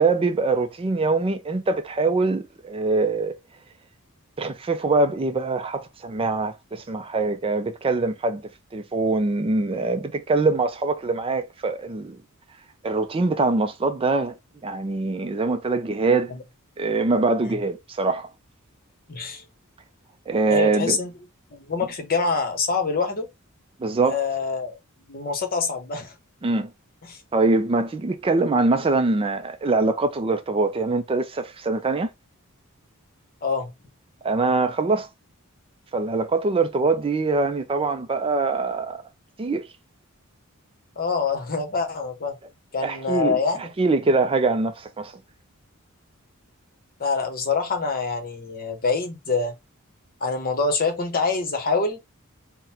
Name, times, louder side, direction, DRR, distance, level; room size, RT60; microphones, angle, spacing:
voice 1, 0.0-3.3 4.4-8.4 8.7-12.2 12.8-14.3 14.6-16.4 16.8-18.3 20.3-21.0 23.8-24.2 26.4-26.7 27.3-32.1 34.2-35.1 35.9-39.0 39.4-39.6 42.8-43.4 43.8-45.1, right 3 dB, 25° right, 0.4 m, -23 dB
voice 2, 19.1-19.4 20.5-21.1 21.5-23.3 24.1-24.8 25.1-26.1 27.1-27.2 33.4-33.7 41.0-42.4 42.7-43.7 47.0-49.5 50.2-52.0, left 4 dB, 45° left, 1.0 m, -25 dB
3.9 x 2.1 x 4.3 m
head